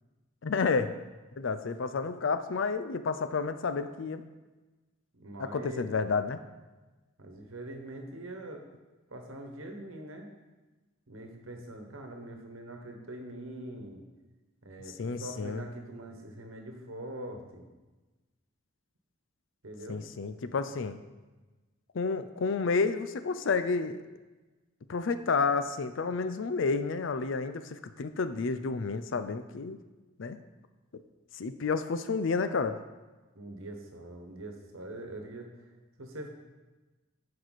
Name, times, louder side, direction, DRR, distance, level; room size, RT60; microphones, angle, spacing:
voice 1, 0.4-0.9 1.4-4.2 5.4-6.4 15.0-15.7 19.9-21.0 21.9-24.0 24.9-29.8 30.2-30.4 30.9-31.0 31.3-32.8, left 4 dB, 65° left, 11 dB, 0.5 m, -30 dB
voice 2, 5.1-5.9 7.2-8.6 9.1-10.3 11.1-14.0 14.6-17.7 19.6-20.0 33.3-35.5 36.0-36.3, right 1 dB, 80° right, 4 dB, 1.2 m, -43 dB
11.0 x 4.8 x 4.1 m, 1.2 s
head